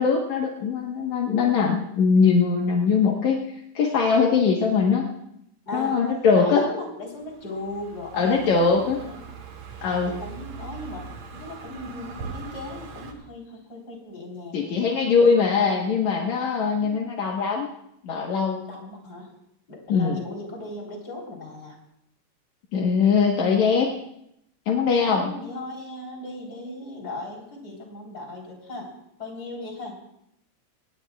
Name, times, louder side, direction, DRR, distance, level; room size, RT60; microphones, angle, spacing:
voice 1, 0.0-3.4 3.8-5.1 5.7-6.7 8.2-9.0 9.8-10.1 14.5-17.7 18.0-18.7 19.9-20.2 22.7-23.9 24.7-25.3, left 5 dB, 75° left, -1 dB, 2.7 m, -21 dB
voice 2, 5.7-6.0 6.3-9.2 10.0-11.1 11.3-15.1 16.8-16.9 18.7-19.3 19.7-21.8 25.0-28.9 29.2-30.0, left 2 dB, 30° left, -1 dB, 4.4 m, -37 dB
Car passing by, 7.1-13.1, right 4 dB, 70° right, 3.0 m, -41 dB
26.0 x 19.0 x 2.4 m, 0.77 s
omnidirectional pair, 3.3 m